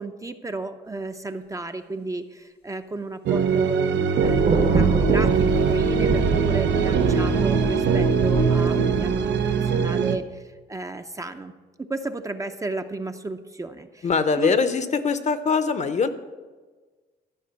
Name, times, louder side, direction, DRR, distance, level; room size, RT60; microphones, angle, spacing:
voice 1, 0.0-3.9 4.2-11.5 11.9-14.1 14.4-14.5, right 2 dB, 20° right, 8 dB, 0.5 m, -33 dB
sound 1, 3.2-10.2, right 7 dB, 90° right, 0.7 m, -22 dB
sound 2, 3.9-8.8, left 2 dB, 90° left, 3.0 m, -29 dB
Thunder, 4.2-9.6, right 4 dB, 45° right, 0.9 m, -26 dB
voice 2, 14.0-16.1, left 5 dB, 40° left, 11 dB, 0.7 m, -22 dB
12.0 x 5.2 x 8.1 m, 1.3 s
cardioid pair, 135°, 18 cm